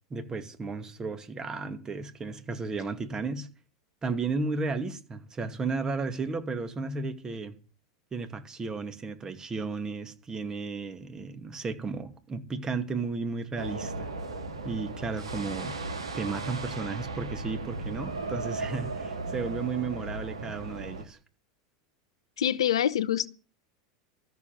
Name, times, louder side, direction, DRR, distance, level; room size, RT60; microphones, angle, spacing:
voice 1, 0.1-3.5 4.0-7.5 8.1-14.1 14.6-15.7 16.1-21.2, right 4 dB, 25° right, 2.3 m, -34 dB
sound 1, 13.6-21.0, right 3 dB, 85° right, 2.2 m, -36 dB
voice 2, 22.4-23.3, left 10 dB, 80° left, 0.8 m, -25 dB
13.5 x 7.1 x 9.3 m
hypercardioid pair, 90°, 3 cm